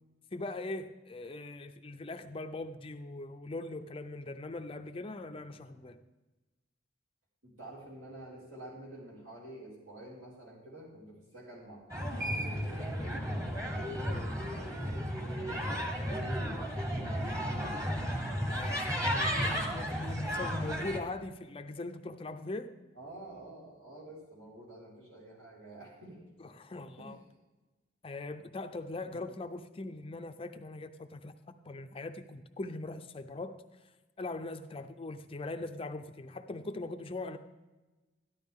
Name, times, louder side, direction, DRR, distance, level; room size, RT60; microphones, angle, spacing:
voice 1, 0.3-6.0 18.5-22.7 26.4-27.2 28.0-33.6 34.2-37.4, left 2 dB, 30° left, 8 dB, 0.5 m, -41 dB
voice 2, 7.4-15.0 15.4-17.9 22.9-26.2 27.0-27.1 29.0-29.2, right 1 dB, 80° right, -6 dB, 4.8 m, -49 dB
sound 1, 11.9-21.0, equal, 15° right, 1.2 m, -34 dB
13.5 x 11.5 x 3.6 m, 1.2 s
head